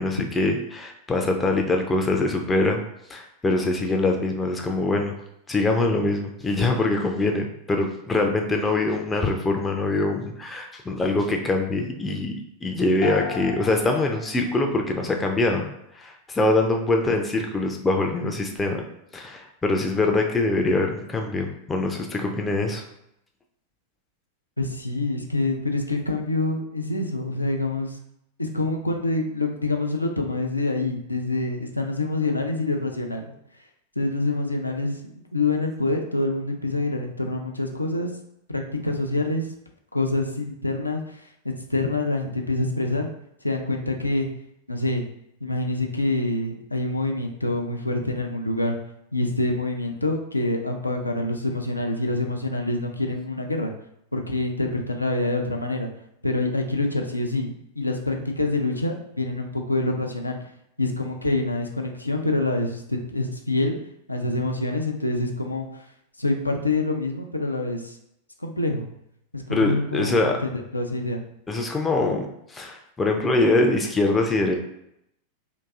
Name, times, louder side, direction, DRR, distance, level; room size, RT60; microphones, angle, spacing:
voice 1, 0.0-2.8 3.1-5.1 5.5-12.3 12.6-15.7 15.9-18.8 19.1-22.8 69.5-70.4 71.5-74.6, left 2 dB, 15° left, 2 dB, 0.4 m, -23 dB
sound 1, 13.0-15.3, left 6 dB, 50° left, 0.7 m, -35 dB
voice 2, 24.6-28.0 28.4-33.3 34.0-38.1 38.5-39.5 39.9-43.1 43.4-44.3 44.7-45.1 45.4-48.8 49.1-53.7 54.1-55.9 56.2-60.4 60.8-63.8 64.1-65.7 66.2-68.0 68.4-68.9 69.3-71.2, left 2 dB, 85° left, 3 dB, 0.4 m, -26 dB
3.8 x 2.6 x 2.3 m, 0.78 s
figure-of-eight pair, 90°, 0 cm